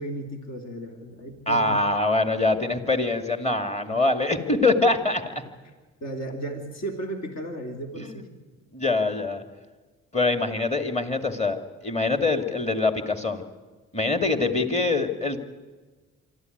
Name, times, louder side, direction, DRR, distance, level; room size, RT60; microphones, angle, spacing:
voice 1, 0.0-1.9 3.8-4.0 6.0-8.3, right 1 dB, 60° left, 4 dB, 3.1 m, -34 dB
voice 2, 1.5-5.4 8.0-8.2 8.7-9.4 10.1-13.4 13.9-15.4, left 3 dB, 20° left, 8 dB, 2.3 m, -24 dB
25.0 x 13.0 x 9.4 m, 1.3 s
cardioid pair, 90°, 30 cm